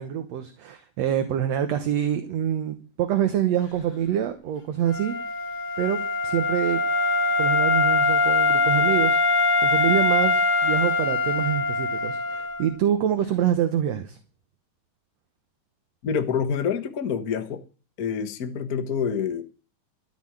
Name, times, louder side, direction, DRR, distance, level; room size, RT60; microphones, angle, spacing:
voice 1, 0.0-5.1 5.8-6.8 7.4-14.2, right 10 dB, 65° right, 1.9 m, -26 dB
Wind instrument woodwind instrument, 4.9-12.7, left 3 dB, 25° left, 2.1 m, -22 dB
voice 2, 16.0-17.6 18.0-19.4, left 7 dB, 65° left, 0.8 m, -27 dB
13.5 x 6.5 x 8.8 m
omnidirectional pair, 3.8 m